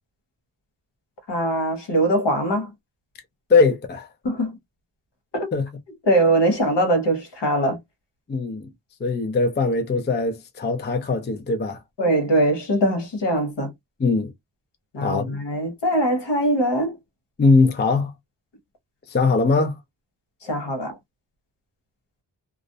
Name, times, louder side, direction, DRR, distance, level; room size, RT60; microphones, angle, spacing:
voice 1, 1.3-2.7 4.2-4.6 5.3-5.5 6.0-7.8 12.0-13.7 14.9-16.9 20.4-21.0, right 1 dB, 70° left, 1.0 m, -22 dB
voice 2, 3.5-4.1 5.5-5.7 8.3-8.7 9.0-11.8 14.0-14.3 15.0-15.3 17.4-18.1 19.1-19.8, left 4 dB, 25° left, 0.4 m, -20 dB
2.4 x 2.0 x 2.6 m
wide cardioid pair, 150°, 44 cm